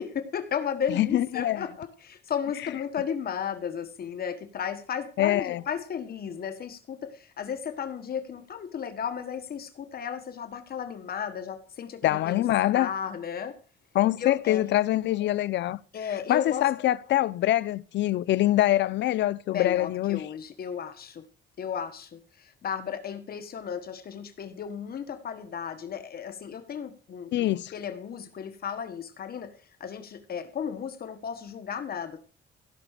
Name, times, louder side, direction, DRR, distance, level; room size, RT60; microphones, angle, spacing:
voice 1, 0.0-12.4 12.7-13.6 14.2-14.6 15.9-16.7 19.5-21.2 21.6-29.5 29.8-32.2, left 7 dB, 55° left, 1.4 m, -34 dB
voice 2, 0.9-1.7 5.2-5.6 12.0-12.9 13.9-15.8 16.3-20.2 27.3-27.7, left 14 dB, 75° left, 0.6 m, -24 dB
15.5 x 6.1 x 6.6 m
cardioid pair, 110°, 19 cm